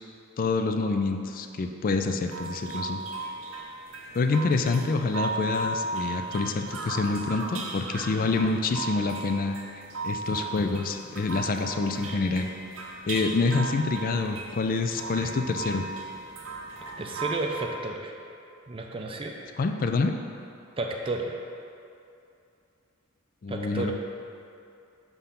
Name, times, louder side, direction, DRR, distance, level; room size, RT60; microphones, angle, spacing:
voice 1, 0.4-3.0 4.1-9.6 10.0-12.5 13.1-15.9 19.6-20.1 23.4-23.9, left 3 dB, 45° left, 6 dB, 0.4 m, -27 dB
sound 1, 2.2-17.6, right 3 dB, 80° right, 0.7 m, -36 dB
voice 2, 17.0-18.1 18.7-19.3 20.8-21.4 23.5-23.9, right 2 dB, 25° right, 1 dB, 0.4 m, -32 dB
5.4 x 3.5 x 5.8 m, 2.6 s
head